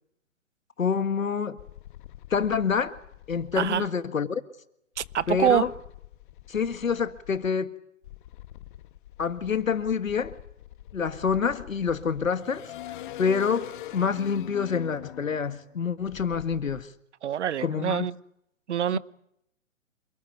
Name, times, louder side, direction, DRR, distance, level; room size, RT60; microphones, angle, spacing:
voice 1, 0.8-1.6 2.3-2.9 3.3-4.4 5.3-5.7 6.5-7.7 9.2-10.4 10.9-16.9 17.6-18.1 18.9-19.0, left 6 dB, 85° left, 1.8 m, -27 dB
sound 1, 1.6-3.9 5.0-7.5 8.0-16.8, left 13 dB, 40° left, 1.5 m, -44 dB
voice 2, 3.6-3.9 5.0-5.7 17.2-18.1 18.7-19.0, right 10 dB, 60° right, 1.1 m, -25 dB
28.0 x 18.5 x 9.3 m
hypercardioid pair, 135°, 39 cm